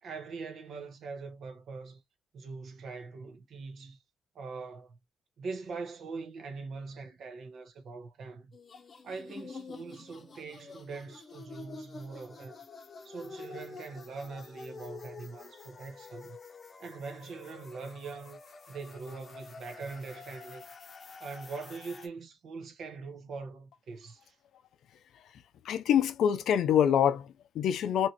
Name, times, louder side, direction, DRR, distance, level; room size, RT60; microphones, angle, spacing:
voice 1, 0.0-2.0 2.3-4.0 4.3-5.0 5.4-8.5 9.0-12.6 13.0-16.4 16.8-18.4 18.7-20.6 21.2-24.4, right 4 dB, 60° right, 1.0 m, -42 dB
sound 1, 8.5-22.1, left 4 dB, 40° left, 0.7 m, -48 dB
voice 2, 25.6-28.1, left 9 dB, 75° left, 0.4 m, -25 dB
3.0 x 2.5 x 2.9 m
cardioid pair, 90°, 0 cm